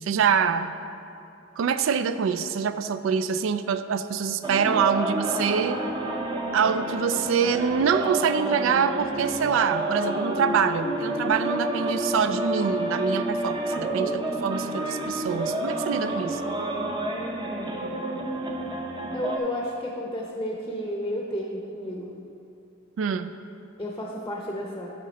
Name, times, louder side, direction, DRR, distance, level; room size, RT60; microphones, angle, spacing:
voice 1, 0.0-0.7 1.6-5.8 6.5-16.4 23.0-23.3, right 6 dB, 85° right, 11 dB, 0.3 m, -25 dB
sound 1, 4.4-19.4, right 1 dB, 25° right, 0.6 m, -29 dB
voice 2, 13.8-14.3 19.1-22.1 23.8-24.9, equal, 15° left, -1 dB, 0.6 m, -32 dB
11.0 x 3.7 x 5.2 m, 2.6 s
head